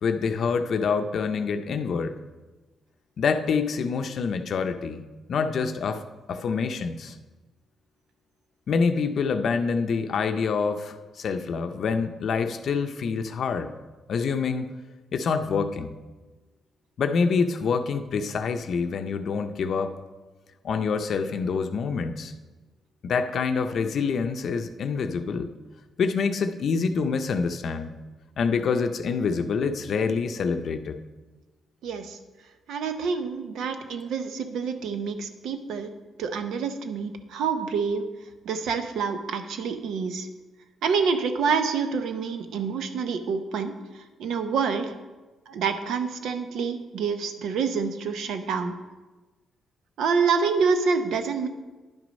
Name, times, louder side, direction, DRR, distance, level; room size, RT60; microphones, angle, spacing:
voice 1, 0.0-2.1 3.2-6.0 6.3-7.1 8.7-13.7 14.1-14.7 15.1-15.9 17.0-19.9 20.6-22.3 23.0-25.5 26.0-27.9 28.4-31.0, left 5 dB, 60° left, 8 dB, 0.6 m, -26 dB
voice 2, 31.8-32.2 32.7-35.9 36.2-38.0 38.4-40.3 40.8-43.8 44.2-44.9 45.5-48.7 50.0-51.5, right 5 dB, 85° right, 8 dB, 0.8 m, -27 dB
10.5 x 6.2 x 5.2 m, 1.2 s
cardioid pair, 110°, 0 cm